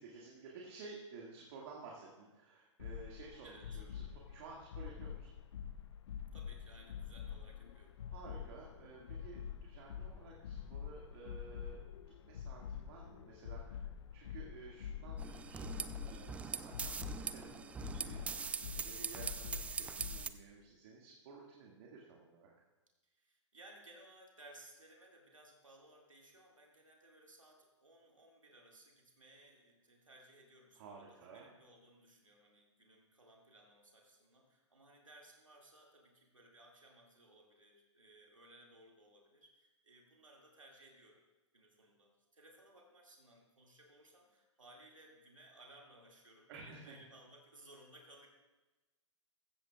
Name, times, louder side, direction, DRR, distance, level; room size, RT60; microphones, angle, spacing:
voice 1, 0.0-5.4 8.1-11.8 12.2-22.5 30.8-31.5 46.5-46.9, right 4 dB, 50° right, -2 dB, 2.1 m, -54 dB
sound 1, 2.8-20.2, left 8 dB, 60° left, 0.8 m, -47 dB
voice 2, 3.4-3.8 6.3-8.0 17.9-18.9 23.0-41.2 41.5-48.3, right 1 dB, 90° right, -1 dB, 2.3 m, -61 dB
sound 2, 15.2-20.3, right 6 dB, 10° right, 0.3 m, -42 dB
15.5 x 14.0 x 2.4 m, 1.1 s
figure-of-eight pair, 115°, 16 cm